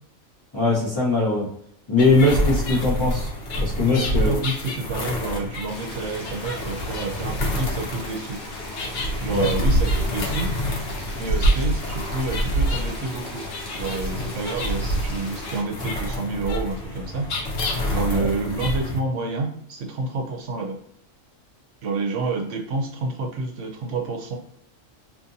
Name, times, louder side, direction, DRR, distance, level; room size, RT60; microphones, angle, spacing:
voice 1, 0.5-1.5 1.9-3.3 3.6-4.3 9.3-9.5 18.1-18.3, left 2 dB, 25° left, -7 dB, 0.8 m, -20 dB
sound 1, 2.0-19.0, equal, 75° left, 1.1 m, -27 dB
voice 2, 3.9-8.4 9.2-10.5 11.2-13.4 13.7-17.3 17.9-20.8 21.8-24.4, right 3 dB, 70° right, 2 dB, 0.9 m, -29 dB
sound 2, 5.7-15.6, left 2 dB, 55° left, 0.9 m, -38 dB
2.8 x 2.5 x 2.6 m, 0.69 s
omnidirectional pair, 1.4 m